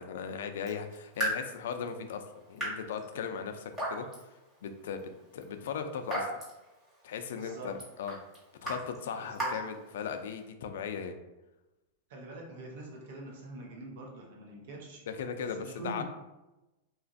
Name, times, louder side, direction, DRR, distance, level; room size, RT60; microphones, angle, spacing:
voice 1, 0.0-4.1 4.6-6.3 7.0-8.2 8.6-11.2 15.1-16.0, left 6 dB, 70° left, 7 dB, 0.3 m, -38 dB
Raindrop / Drip, 0.5-10.4, right 1 dB, 20° right, 1.2 m, -40 dB
voice 2, 7.3-7.7 9.2-9.5 12.1-15.0 15.4-16.0, right 2 dB, 60° right, 0 dB, 0.7 m, -44 dB
2.9 x 2.4 x 2.5 m, 1.0 s
supercardioid pair, 160°, 0 cm